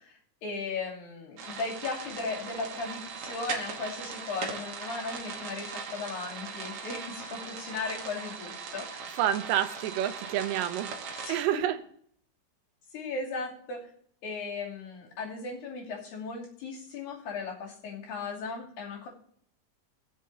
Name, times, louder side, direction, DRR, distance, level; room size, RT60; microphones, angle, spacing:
voice 1, 0.0-9.2 11.2-11.6 12.9-13.9 14.2-19.1, left 4 dB, 85° left, -5 dB, 4.6 m, -37 dB
sound 1, 1.4-11.4, right 5 dB, 60° right, 2.3 m, -39 dB
voice 2, 9.2-11.8, right 11 dB, 80° right, 10 dB, 2.3 m, -29 dB
20.0 x 7.6 x 2.8 m, 0.64 s
omnidirectional pair, 4.0 m